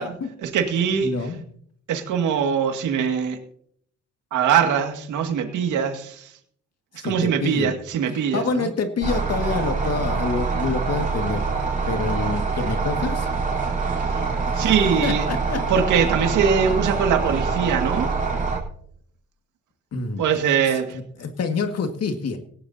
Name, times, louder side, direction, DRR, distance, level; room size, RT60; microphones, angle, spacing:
voice 1, 0.4-1.1 1.9-3.4 4.3-6.3 6.9-8.7 14.1-14.2 14.5-15.2 15.7-18.1 20.2-21.0, right 7 dB, 80° right, 5 dB, 2.1 m, -22 dB
voice 2, 1.0-1.4 7.0-7.7 8.3-11.4 11.9-13.3 14.5-15.6 19.9-20.2 20.7-22.4, left 4 dB, 55° left, 6 dB, 1.9 m, -27 dB
sound 1, 9.0-18.6, right 4 dB, 25° right, 3.9 m, -25 dB
18.0 x 15.0 x 2.8 m, 0.65 s
cardioid pair, 90°, 30 cm